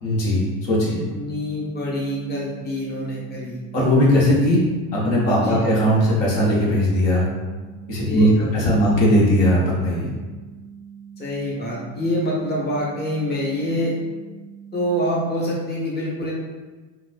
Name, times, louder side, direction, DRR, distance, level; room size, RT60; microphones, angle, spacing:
voice 1, 0.0-1.0 3.7-4.6 4.9-7.3 7.9-8.3 8.5-10.1, equal, 65° left, -5 dB, 1.3 m, -18 dB
sound 1, 0.8-15.1, right 7 dB, ahead, 0.8 m, -43 dB
voice 2, 1.1-3.6 5.4-5.6 8.0-8.9 11.2-14.0 14.7-16.3, equal, 20° left, -6 dB, 1.0 m, -26 dB
4.0 x 2.4 x 2.5 m, 1.3 s
supercardioid pair, 95°, 46 cm